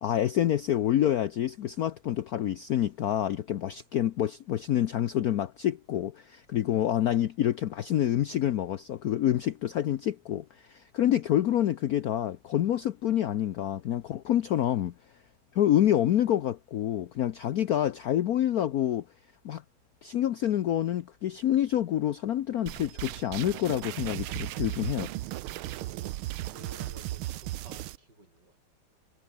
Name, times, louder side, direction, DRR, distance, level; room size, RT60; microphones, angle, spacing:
voice 1, 0.0-14.9 15.5-19.0 19.4-19.6 20.0-25.1, left 11 dB, 65° left, 1.0 m, -27 dB
sound 1, 22.7-28.0, right 15 dB, 85° right, 1.6 m, -36 dB
voice 2, 25.6-28.6, right 2 dB, 55° right, 8.3 m, -53 dB
omnidirectional pair, 2.3 m